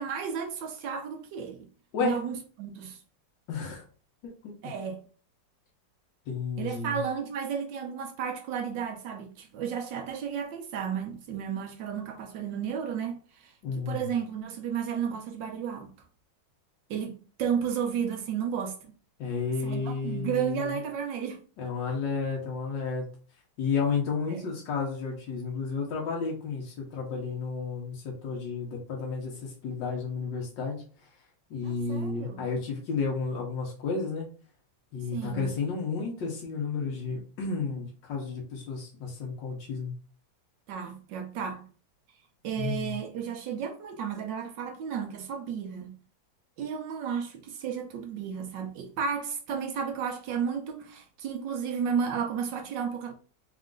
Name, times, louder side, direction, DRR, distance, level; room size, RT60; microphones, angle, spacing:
voice 1, 0.0-1.7 2.0-3.0 4.6-5.0 6.6-15.9 16.9-18.9 19.6-21.4 24.3-24.5 31.6-32.5 35.1-35.5 40.7-41.7 42.4-46.0 46.6-53.1, right 7 dB, 85° right, 1.5 m, -33 dB
voice 2, 3.5-3.8 4.4-4.5 6.3-7.0 13.6-14.1 19.2-20.8 21.6-23.0 23.6-30.8 31.5-34.3 34.9-39.9 42.6-43.0, left 4 dB, 80° left, 1.7 m, -32 dB
4.3 x 2.5 x 3.7 m
omnidirectional pair, 1.9 m